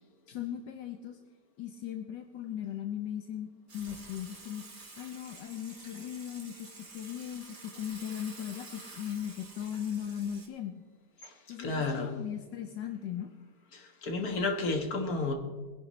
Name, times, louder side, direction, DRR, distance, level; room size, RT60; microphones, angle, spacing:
voice 1, 0.3-1.2 1.6-4.7 5.0-10.7 11.5-13.3, left 9 dB, 80° left, 6 dB, 1.4 m, -38 dB
Water / Water tap faucet / Sink (filling or washing), 3.7-10.5, right 3 dB, 50° right, 2.5 m, -50 dB
voice 2, 11.2-12.1 13.7-15.3, left 3 dB, 55° left, 3 dB, 2.0 m, -32 dB
21.5 x 11.0 x 3.2 m, 1.4 s
omnidirectional pair, 1.9 m